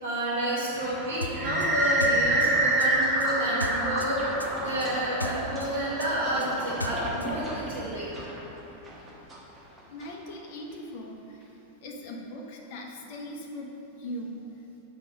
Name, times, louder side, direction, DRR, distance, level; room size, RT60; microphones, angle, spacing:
voice 1, 0.0-8.2, right 1 dB, 60° right, -6 dB, 1.2 m, -29 dB
sound 1, 0.8-10.1, right 1 dB, 20° right, 1.1 m, -29 dB
sound 2, 1.2-4.1 4.4-7.3, left 1 dB, 85° left, 0.3 m, -36 dB
voice 2, 9.8-14.4, left 1 dB, 50° left, 0 dB, 0.7 m, -40 dB
5.4 x 4.2 x 5.3 m, 2.9 s
figure-of-eight pair, 90°, 0 cm